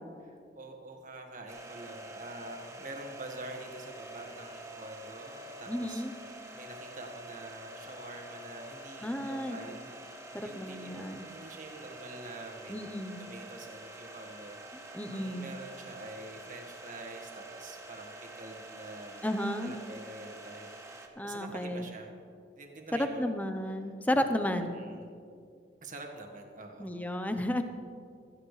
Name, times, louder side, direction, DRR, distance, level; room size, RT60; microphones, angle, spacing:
voice 1, 0.2-9.9 10.4-12.9 13.2-14.6 15.1-19.2 19.6-22.1 22.6-23.3 23.8-23.9 24.6-25.1 25.8-26.9, right 2 dB, 50° right, 1 dB, 1.7 m, -46 dB
sound 1, 1.5-21.1, right 1 dB, 15° right, 1.1 m, -47 dB
voice 2, 5.7-6.1 9.0-9.6 10.3-11.3 12.7-13.2 14.9-15.5 19.2-19.7 21.2-21.8 22.9-24.8 26.8-27.6, left 1 dB, 10° left, 7 dB, 0.8 m, -32 dB
16.0 x 14.5 x 3.3 m, 2.3 s
head